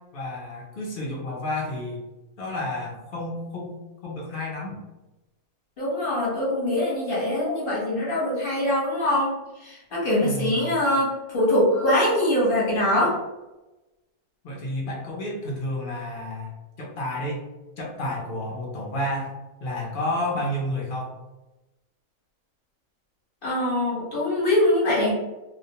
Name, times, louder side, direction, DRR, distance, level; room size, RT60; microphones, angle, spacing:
voice 1, 0.1-2.0 2.4-3.8 4.0-4.8 10.2-10.7 14.4-16.5 16.8-17.4 17.8-19.3 19.6-21.1, left 1 dB, 60° left, -3 dB, 0.5 m, -30 dB
voice 2, 5.8-9.3 9.6-13.1 23.4-25.1, left 1 dB, 45° left, -6 dB, 0.9 m, -23 dB
2.4 x 2.1 x 2.7 m, 1.0 s
omnidirectional pair, 1.5 m